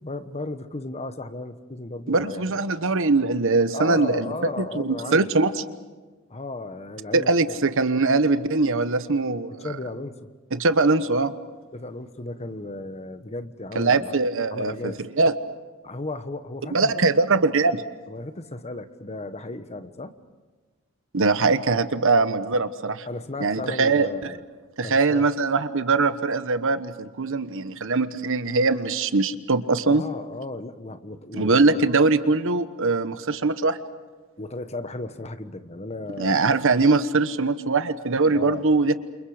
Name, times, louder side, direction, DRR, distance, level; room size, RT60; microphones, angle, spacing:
voice 1, 0.0-2.6 3.7-5.3 6.3-7.6 9.6-10.3 11.7-14.1 14.5-15.0 15.8-17.0 18.1-20.1 23.1-24.4 24.8-25.3 29.9-31.8 34.4-36.4 38.3-38.6, left 2 dB, 30° left, 10 dB, 1.2 m, -35 dB
voice 2, 2.1-5.5 7.1-9.7 10.5-11.3 13.7-15.3 16.7-17.8 21.1-23.1 23.4-24.1 24.8-30.0 31.3-33.8 36.2-38.9, right 3 dB, 65° right, 11 dB, 1.2 m, -22 dB
29.5 x 28.0 x 5.0 m, 1.3 s
head